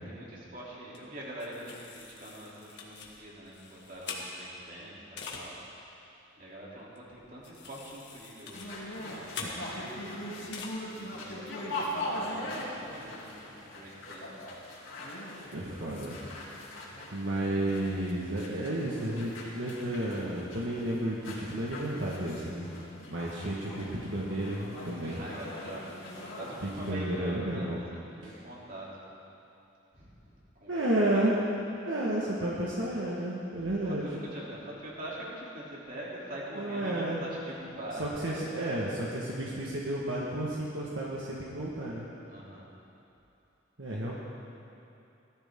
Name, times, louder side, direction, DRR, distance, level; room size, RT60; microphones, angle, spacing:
voice 1, 0.0-5.9 6.4-8.7 9.0-10.1 10.9-14.3 25.1-29.3 29.9-30.3 30.6-30.7 31.0-31.2 33.6-38.1 42.3-42.7, right 1 dB, 45° right, -6 dB, 3.2 m, -44 dB
sound 1, 0.9-1.0 1.4-4.7 5.2-5.4 7.0-7.1 7.4-10.0 10.5-10.7, left 5 dB, 60° left, 1.8 m, -44 dB
sound 2, 8.5-26.9, left 1 dB, 80° left, 2.9 m, -41 dB
voice 2, 15.5-16.2 17.1-22.6 23.1-25.2 26.6-27.8 28.2-28.4 30.7-31.3 31.9-34.1 36.6-37.2 38.0-42.0 43.8-44.1, right 1 dB, 75° right, -5 dB, 1.6 m, -32 dB
18.0 x 13.0 x 3.8 m, 2.8 s
head